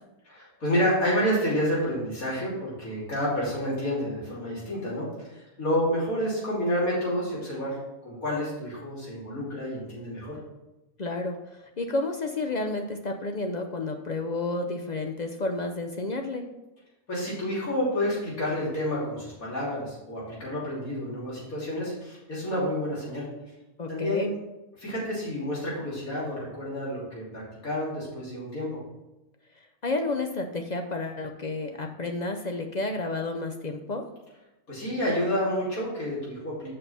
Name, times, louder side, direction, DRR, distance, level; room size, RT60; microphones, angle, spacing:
voice 1, 0.3-10.4 17.1-23.3 23.9-24.3 24.8-28.7 34.7-36.7, equal, 80° left, -7 dB, 3.6 m, -29 dB
voice 2, 11.0-11.4 11.8-16.5 23.8-24.3 29.8-34.1, left 2 dB, 50° left, 5 dB, 0.5 m, -31 dB
6.7 x 5.6 x 5.6 m, 0.98 s
omnidirectional pair, 1.5 m